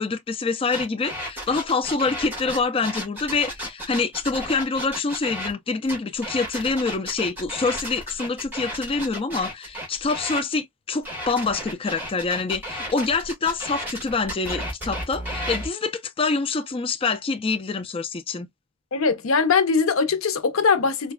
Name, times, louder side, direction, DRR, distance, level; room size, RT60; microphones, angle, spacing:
voice 1, 0.0-18.5, left 4 dB, 25° left, 0.4 m, -26 dB
sound 1, 0.7-5.5 5.9-10.4 11.0-15.7, equal, 10° right, 1.6 m, -33 dB
voice 2, 18.9-21.1, left 5 dB, 80° left, 0.6 m, -21 dB
4.0 x 2.2 x 2.2 m
head